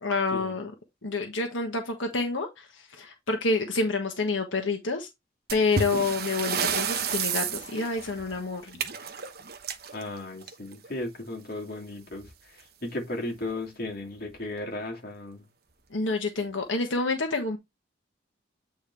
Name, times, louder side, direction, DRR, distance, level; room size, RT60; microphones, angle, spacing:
voice 1, 0.0-0.7 1.0-5.1 5.5-8.7 15.9-17.6, left 3 dB, 85° left, 1.3 m, -28 dB
sound 1, 5.5-10.9 12.1-12.3 12.6-12.7 13.3-13.4 14.1-14.4, right 6 dB, 55° right, 1.1 m, -32 dB
voice 2, 9.9-12.3 12.5-15.4, left 2 dB, 50° left, 2.5 m, -35 dB
8.7 x 4.6 x 3.4 m
head